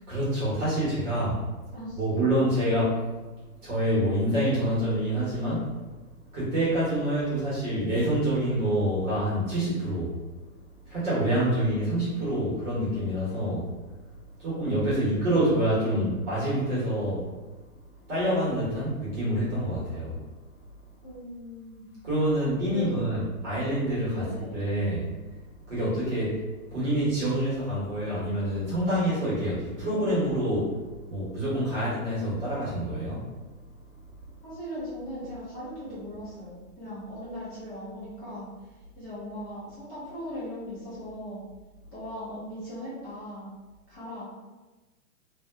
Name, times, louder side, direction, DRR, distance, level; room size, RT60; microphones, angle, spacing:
voice 1, 0.1-1.4 1.9-3.0 3.6-5.7 6.3-10.1 10.9-13.6 14.4-17.3 18.1-20.2 22.0-24.2 24.5-25.1 25.7-26.4 26.7-30.7 31.1-33.3, right 1 dB, 20° right, -10 dB, 1.0 m, -26 dB
voice 2, 1.7-2.2 11.7-12.2 21.0-21.9 22.7-23.2 24.1-24.5 34.4-38.5 39.0-41.4 41.9-43.5 43.9-44.3, equal, 10° left, -11 dB, 0.5 m, -39 dB
2.7 x 2.0 x 3.4 m, 1.2 s
hypercardioid pair, 155°, 44 cm